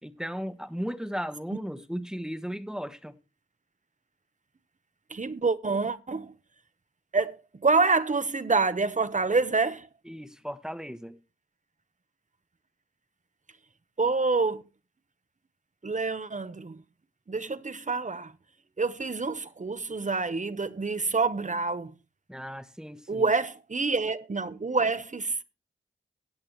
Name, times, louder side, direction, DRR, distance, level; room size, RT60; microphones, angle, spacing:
voice 1, 0.0-3.2 10.1-11.2 22.3-23.3, equal, 5° right, 1.1 m, -36 dB
voice 2, 5.1-6.3 7.1-9.9 14.0-14.6 15.8-16.8 17.3-18.3 18.8-21.9 23.1-25.4, right 4 dB, 35° right, 0.9 m, -27 dB
16.0 x 8.6 x 3.1 m
cardioid pair, 45°, 21 cm